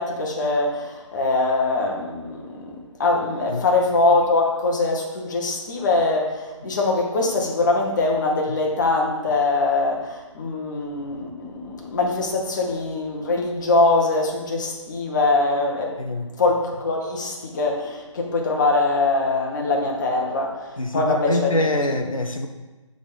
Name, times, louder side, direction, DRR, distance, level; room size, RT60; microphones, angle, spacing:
voice 1, 0.0-16.0 16.4-22.0, left 3 dB, 35° left, 0 dB, 1.3 m, -23 dB
voice 2, 20.8-22.5, left 2 dB, 90° left, 4 dB, 0.8 m, -24 dB
8.4 x 3.9 x 5.3 m, 1.2 s
figure-of-eight pair, 150°, 17 cm